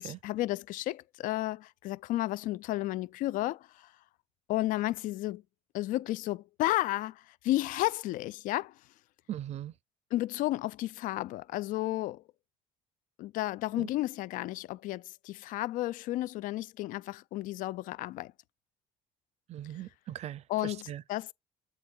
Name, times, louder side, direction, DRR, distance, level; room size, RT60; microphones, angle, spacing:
voice 1, 0.0-3.9 4.5-5.4 5.7-8.8 10.1-12.2 13.2-18.3 20.5-21.3, left 16 dB, 70° left, 0.4 m, -32 dB
voice 2, 9.3-9.7 13.8-13.9 19.5-21.0, right 11 dB, 50° right, 0.4 m, -40 dB
7.7 x 3.7 x 4.4 m
supercardioid pair, 85°, 14 cm